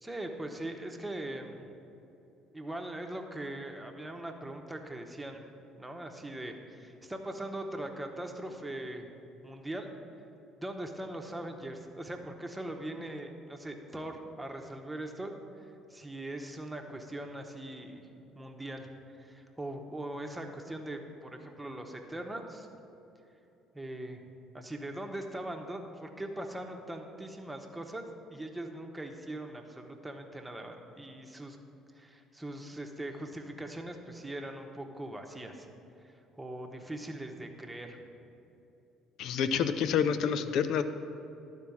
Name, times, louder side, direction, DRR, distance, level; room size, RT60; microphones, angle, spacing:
voice 1, 0.0-1.8 2.5-5.5 5.8-9.1 9.4-9.9 10.6-18.1 18.3-22.7 23.7-24.3 24.5-28.0 28.3-31.6 31.9-35.7 36.0-38.1, right 1 dB, 10° right, 3 dB, 1.2 m, -41 dB
voice 2, 39.2-40.8, left 7 dB, 60° left, 11 dB, 0.5 m, -28 dB
11.5 x 4.6 x 7.2 m, 2.9 s
hypercardioid pair, 55°, 0 cm